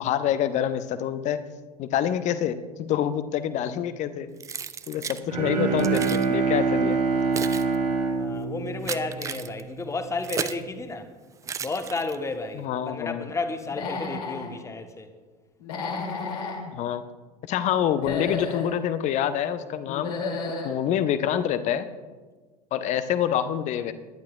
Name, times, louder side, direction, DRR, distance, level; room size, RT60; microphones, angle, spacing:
voice 1, 0.0-1.4 1.8-4.3 4.9-7.0 12.5-13.3 16.7-17.0 17.5-20.1 20.6-21.9 22.7-23.9, left 10 dB, 35° left, 0.7 m, -26 dB
Keys jangling, 4.4-5.2 5.8-6.3 7.0-10.7 11.4-12.4, right 7 dB, 15° right, 0.4 m, -35 dB
Bowed string instrument, 5.3-9.6, right 5 dB, 80° right, 2.3 m, -25 dB
voice 2, 8.2-11.1 11.6-15.1, left 3 dB, 15° left, 1.0 m, -32 dB
Human voice / Animal, 13.6-14.5 15.6-16.6 17.9-18.7 19.9-20.7, left 4 dB, 65° left, 2.5 m, -32 dB
21.0 x 10.5 x 2.3 m
figure-of-eight pair, 80°, 21 cm